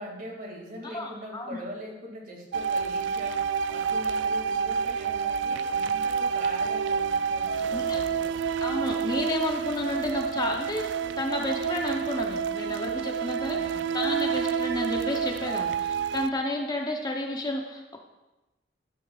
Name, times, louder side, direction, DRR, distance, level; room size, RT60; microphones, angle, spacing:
voice 1, 0.0-8.4 13.5-13.9, equal, 50° right, 0 dB, 2.1 m, -42 dB
voice 2, 0.8-1.6 7.7-8.0 8.6-10.8 11.2-18.0, left 2 dB, 20° left, 2 dB, 0.7 m, -31 dB
sound 1, 2.5-16.3, right 6 dB, 75° right, 0.3 m, -28 dB
12.5 x 8.4 x 2.4 m, 1.1 s
head